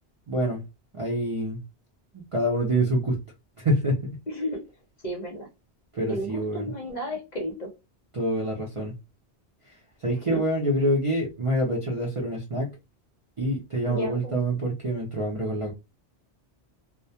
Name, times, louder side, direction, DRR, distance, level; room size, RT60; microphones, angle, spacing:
voice 1, 0.3-0.6 0.9-1.6 2.3-3.2 3.6-4.2 5.9-6.7 8.1-8.9 10.0-12.7 13.4-15.7, right 1 dB, 45° right, 0.4 m, -26 dB
voice 2, 4.3-4.6 5.0-5.5 6.1-7.7 10.3-10.4 13.9-14.4, equal, 45° left, 0.7 m, -33 dB
2.2 x 2.2 x 2.7 m
omnidirectional pair, 1.2 m